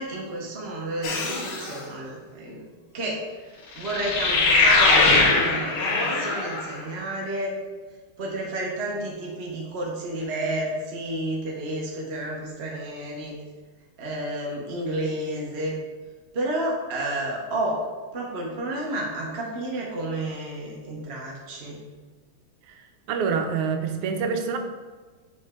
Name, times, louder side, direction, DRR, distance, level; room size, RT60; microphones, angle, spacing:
voice 1, 0.0-2.7 2.9-3.2 3.7-7.5 8.2-13.3 14.0-15.8 16.3-17.8 18.1-21.8, right 1 dB, 40° right, -3 dB, 1.0 m, -31 dB
sound 1, 1.0-1.7 3.8-6.7, left 3 dB, 75° left, 1.8 m, -21 dB
voice 2, 23.1-24.6, right 5 dB, 90° right, 5 dB, 1.6 m, -26 dB
6.1 x 5.2 x 3.6 m, 1.3 s
omnidirectional pair, 2.3 m